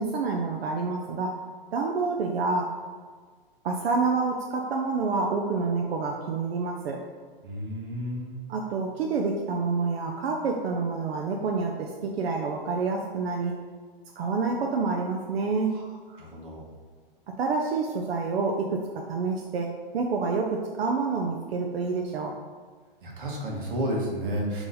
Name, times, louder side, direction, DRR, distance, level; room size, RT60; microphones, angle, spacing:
voice 1, 0.0-1.4 1.7-2.7 3.6-7.0 8.5-13.5 14.2-15.8 17.4-22.3, right 4 dB, 90° right, 1 dB, 0.5 m, -28 dB
voice 2, 7.4-8.4 15.7-15.8 16.2-16.7 23.0-24.6, equal, 60° right, -2 dB, 1.1 m, -31 dB
3.8 x 2.9 x 3.9 m, 1.6 s
hypercardioid pair, 170°, 30 cm